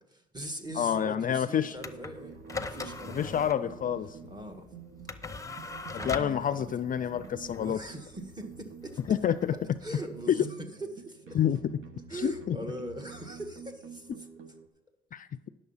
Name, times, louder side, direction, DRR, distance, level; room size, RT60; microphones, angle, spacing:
voice 1, 0.0-3.7 4.3-4.7 5.9-7.3 7.6-9.2 9.8-11.4 12.1-14.3, right 1 dB, 20° right, 5 dB, 1.5 m, -42 dB
sound 1, 0.6-14.7, right 6 dB, 90° right, 1.2 m, -49 dB
voice 2, 0.8-1.7 3.1-4.1 6.0-7.8 9.1-9.5 11.3-11.6 12.2-12.6 15.1-15.5, left 9 dB, 45° left, 14 dB, 0.4 m, -28 dB
sound 2, 1.8-10.3, left 4 dB, 15° left, 0.7 m, -42 dB
10.5 x 6.6 x 5.6 m, 0.91 s
cardioid pair, 90°, 20 cm